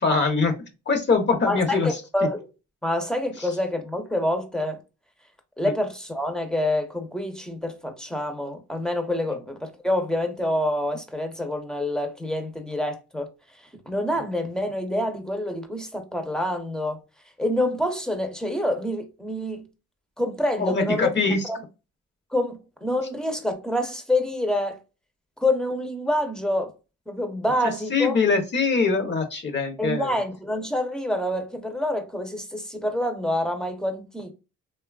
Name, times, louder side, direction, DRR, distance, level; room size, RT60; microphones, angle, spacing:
voice 1, 0.0-0.5 0.9-1.9 5.6-5.7 20.6-21.4 27.9-30.2, left 4 dB, 35° left, 0.8 m, -22 dB
voice 2, 1.5-2.4 2.8-4.8 5.6-13.3 13.9-17.0 17.4-19.6 20.2-21.1 21.5-21.6 22.3-24.8 25.4-26.7 27.1-28.1 29.8-34.3, left 1 dB, ahead, 0.7 m, -27 dB
3.0 x 2.3 x 2.3 m
cardioid pair, 90°, 30 cm